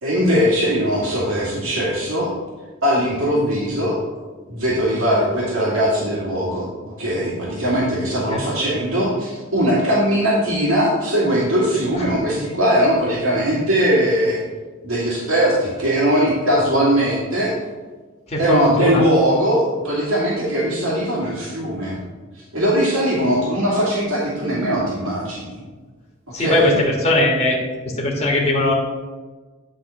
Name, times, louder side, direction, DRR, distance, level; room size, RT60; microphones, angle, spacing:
voice 1, 0.0-2.3 2.8-4.0 4.5-6.7 7.0-14.4 14.8-17.5 18.4-22.0 22.5-25.6 26.4-26.7, equal, 85° right, -6 dB, 2.3 m, -20 dB
voice 2, 18.3-19.0 26.3-27.6 28.0-28.7, left 1 dB, 30° left, -2 dB, 1.5 m, -19 dB
10.0 x 3.8 x 6.4 m, 1.3 s
head